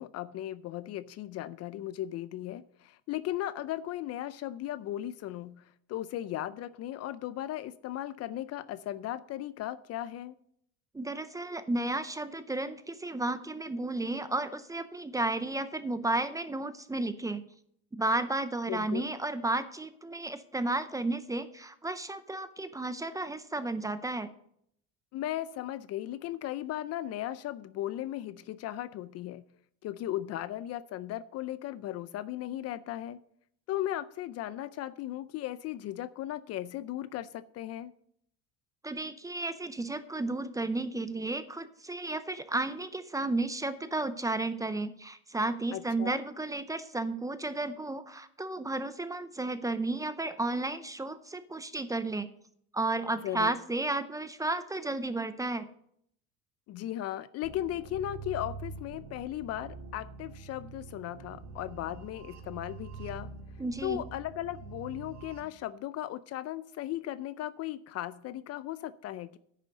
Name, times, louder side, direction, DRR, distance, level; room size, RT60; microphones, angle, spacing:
voice 1, 0.0-10.4 18.7-19.1 25.1-29.4 29.8-33.2 33.7-37.9 45.7-46.2 53.2-53.6 56.7-63.3 63.8-69.4, left 13 dB, 45° left, 16 dB, 0.5 m, -37 dB
voice 2, 10.9-17.4 18.0-24.3 38.8-52.3 52.7-55.7 63.6-64.0, right 2 dB, 10° right, 12 dB, 0.6 m, -33 dB
sound 1, 57.4-65.4, right 4 dB, 70° right, 2.1 m, -45 dB
9.9 x 6.6 x 6.5 m, 0.68 s
supercardioid pair, 120°, 36 cm